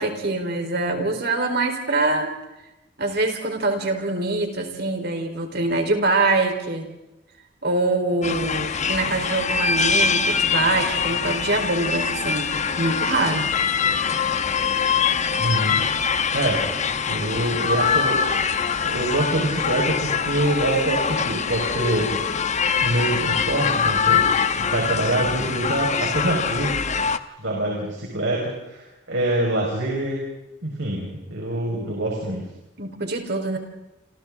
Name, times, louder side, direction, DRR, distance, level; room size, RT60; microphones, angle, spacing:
voice 1, 0.0-2.3 3.0-6.9 7.6-13.5 32.8-33.6, right 2 dB, 60° right, 4 dB, 4.3 m, -24 dB
sound 1, 8.2-27.2, left 6 dB, 40° left, 1.0 m, -23 dB
voice 2, 15.4-15.8 16.3-16.6 17.1-18.2 18.8-22.1 22.8-24.2 24.6-26.7 27.4-30.2 30.6-32.4, right 1 dB, 75° right, -2 dB, 5.3 m, -25 dB
29.0 x 27.5 x 3.8 m, 0.94 s
head